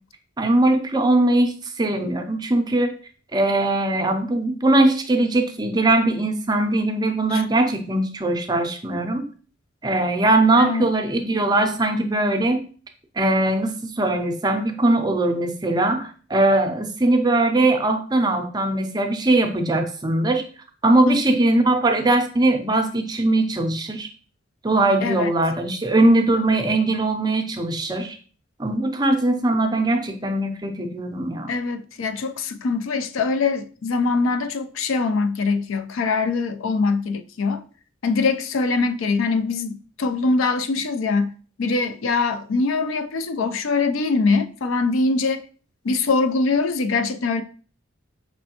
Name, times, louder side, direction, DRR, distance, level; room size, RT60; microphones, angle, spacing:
voice 1, 0.4-2.9 3.3-9.3 9.8-12.6 13.2-20.4 20.8-24.1 24.6-28.2 28.6-31.5, right 2 dB, 20° right, 0.5 m, -20 dB
voice 2, 31.5-37.6 38.0-41.3 41.6-45.5 45.8-47.4, left 4 dB, 75° left, 0.4 m, -23 dB
5.2 x 3.2 x 2.9 m
head